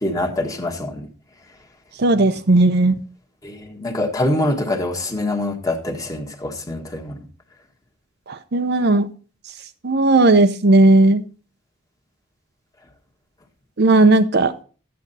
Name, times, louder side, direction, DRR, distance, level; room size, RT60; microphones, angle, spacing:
voice 1, 0.0-1.1 3.4-7.2, left 1 dB, 20° left, 1.5 m, -24 dB
voice 2, 2.0-3.0 8.5-9.1 9.8-11.2 13.8-14.5, right 2 dB, 55° right, 0.8 m, -15 dB
12.5 x 8.5 x 4.1 m
head